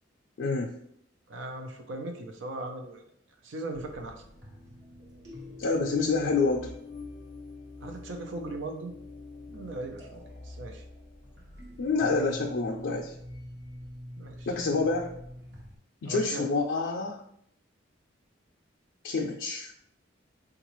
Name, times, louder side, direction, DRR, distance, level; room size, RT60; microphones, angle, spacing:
voice 1, 0.4-0.7 5.6-6.7 11.8-13.1 14.5-15.1 16.0-17.2 19.0-19.7, left 3 dB, 75° left, -1 dB, 0.4 m, -27 dB
voice 2, 1.3-3.0 3.4-4.2 7.8-8.9 9.5-10.8 14.2-14.5 16.0-16.5, right 2 dB, 85° right, 4 dB, 0.5 m, -38 dB
sound 1, 3.7-15.8, left 1 dB, 60° right, 0.9 m, -45 dB
3.8 x 2.3 x 3.0 m, 0.71 s
head